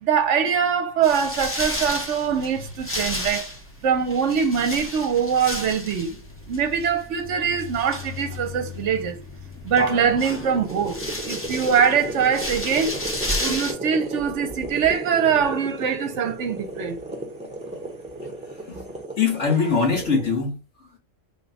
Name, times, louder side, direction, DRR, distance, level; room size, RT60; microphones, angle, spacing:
voice 1, 0.0-3.5 3.8-6.2 6.5-9.2 9.6-11.0 11.2-13.0 13.4-17.0, right 7 dB, 70° right, 1.0 m, -23 dB
sound 1, 1.0-13.7, left 1 dB, 20° left, 0.3 m, -32 dB
sound 2, 10.3-20.3, right 1 dB, 5° right, 0.7 m, -35 dB
voice 2, 19.2-21.0, left 5 dB, 65° left, 1.6 m, -23 dB
3.9 x 2.2 x 3.9 m
omnidirectional pair, 1.3 m